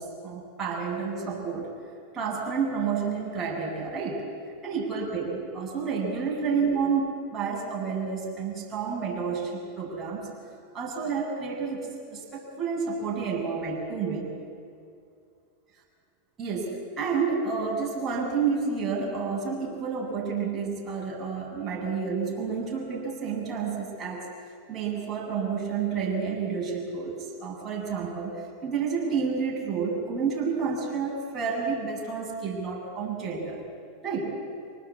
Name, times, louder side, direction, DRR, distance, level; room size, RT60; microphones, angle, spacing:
voice 1, 0.0-1.7 2.1-4.2 4.6-10.3 10.7-14.3 16.4-24.3 24.7-33.6 34.0-34.4, right 5 dB, 25° right, -2 dB, 8.0 m, -30 dB
26.0 x 19.0 x 8.7 m, 2.4 s
hypercardioid pair, 105°, 0 cm